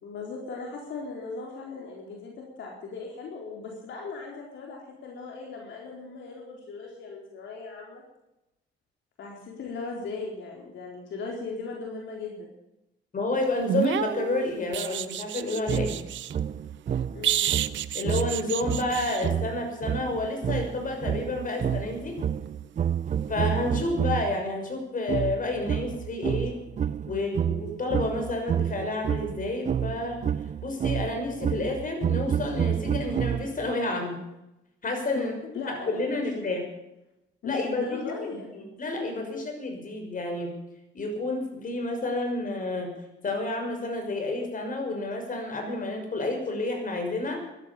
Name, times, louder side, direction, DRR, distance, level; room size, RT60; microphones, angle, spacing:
voice 1, 0.0-8.0 9.2-12.5 17.1-17.5 26.7-27.4 35.1-36.5 37.4-38.7 39.2-39.4, left 4 dB, 70° left, -1 dB, 4.2 m, -38 dB
voice 2, 13.1-15.9 17.9-22.1 23.3-26.6 27.1-30.2 30.6-34.2 34.8-35.3 35.7-36.6 37.4-38.0 38.8-40.5 40.9-42.9 43.2-47.4, left 2 dB, 45° left, 4 dB, 6.1 m, -30 dB
sound 1, 13.6-16.3 17.2-19.3 21.9-22.1, right 11 dB, 70° right, 0.8 m, -30 dB
sound 2, 15.7-24.4 25.1-33.7, right 9 dB, 40° right, 0.5 m, -29 dB
15.5 x 12.0 x 7.2 m, 0.91 s
cardioid pair, 90°, 20 cm